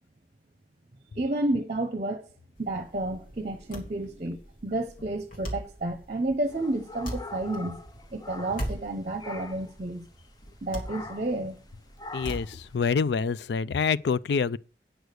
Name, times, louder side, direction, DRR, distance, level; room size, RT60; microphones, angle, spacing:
voice 1, 1.2-2.2 2.6-7.8 8.1-10.0 10.6-11.6, right 2 dB, 40° right, 0.9 m, -31 dB
sound 1, 2.6-13.1, equal, 55° left, 2.6 m, -41 dB
sound 2, 6.5-8.9 9.2-9.7 10.8-11.4 12.0-12.6, left 3 dB, 20° left, 0.6 m, -42 dB
voice 2, 12.1-14.6, left 5 dB, 70° left, 0.4 m, -26 dB
9.1 x 6.3 x 6.6 m
head